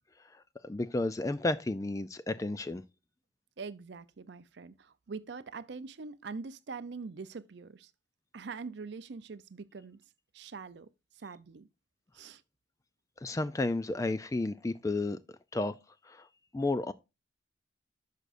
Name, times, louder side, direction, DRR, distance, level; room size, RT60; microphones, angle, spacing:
voice 1, 0.2-2.8 13.2-15.2 15.5-15.8 16.0-16.3 16.5-16.9, left 2 dB, 15° left, 0.3 m, -32 dB
voice 2, 3.6-7.9 8.3-10.0 10.3-10.9 11.2-11.7 12.1-12.4, right 4 dB, 60° right, 0.5 m, -43 dB
11.0 x 6.6 x 2.5 m
head